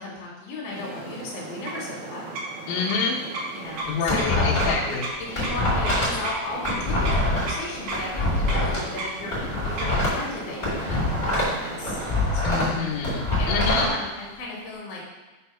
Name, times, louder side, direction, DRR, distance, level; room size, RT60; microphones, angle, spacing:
voice 1, 0.0-2.2 3.5-4.9 5.2-12.0 12.3-12.6 13.4-15.0, left 2 dB, 50° left, -5 dB, 2.9 m, -35 dB
sound 1, 0.7-12.5, right 2 dB, 75° right, 3.1 m, -35 dB
voice 2, 2.7-3.2 3.9-5.1 12.4-13.9, left 4 dB, 70° left, -3 dB, 2.5 m, -27 dB
sound 2, 3.7-4.9 5.2-8.8 9.2-11.6 11.8-13.9, left 1 dB, 15° left, 1.5 m, -24 dB
6.3 x 4.5 x 5.7 m, 1.2 s
omnidirectional pair, 4.6 m